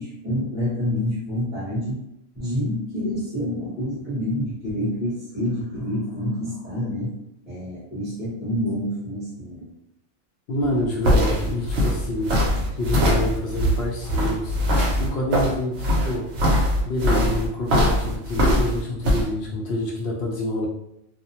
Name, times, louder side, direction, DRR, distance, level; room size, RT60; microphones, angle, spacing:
voice 1, 0.0-2.0 2.3-7.1 7.5-9.7, left 1 dB, 10° right, -10 dB, 0.7 m, -27 dB
voice 2, 10.5-12.3 12.8-14.6 15.0-16.3 16.8-20.7, left 1 dB, 65° left, -3 dB, 0.7 m, -27 dB
sound 1, 10.6-19.2, equal, 70° right, 0.8 m, -21 dB
2.5 x 2.0 x 2.7 m, 0.82 s
omnidirectional pair, 1.3 m